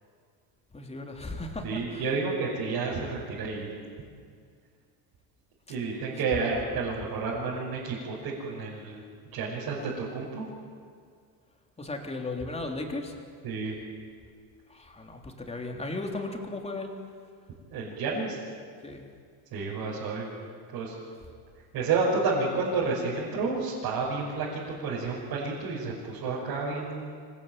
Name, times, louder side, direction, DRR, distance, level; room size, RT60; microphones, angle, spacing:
voice 1, 0.7-2.1 11.8-13.2 14.7-16.9 18.8-19.1, left 2 dB, 15° left, 2 dB, 3.5 m, -36 dB
voice 2, 1.6-3.7 5.7-9.0 9.3-10.5 13.4-13.8 17.7-18.4 19.5-20.3 20.7-20.9 21.7-27.1, right 4 dB, 55° right, -5 dB, 5.9 m, -30 dB
25.5 x 18.0 x 9.0 m, 2.1 s
supercardioid pair, 125°, 44 cm